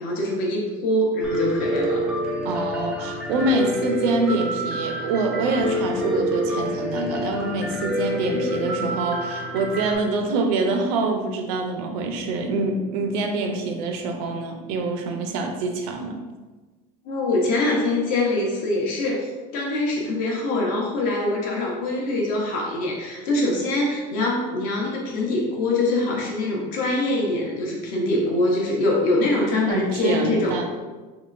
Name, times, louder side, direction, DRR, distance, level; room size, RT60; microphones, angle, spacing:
voice 1, 0.0-2.1 17.0-30.6, left 2 dB, 50° left, -1 dB, 0.8 m, -24 dB
Piano, 1.2-10.0, equal, 5° right, 0.3 m, -27 dB
voice 2, 2.4-16.2 29.7-30.7, right 3 dB, 75° right, 3 dB, 0.6 m, -25 dB
3.7 x 2.9 x 2.5 m, 1.3 s
cardioid pair, 175°, 19 cm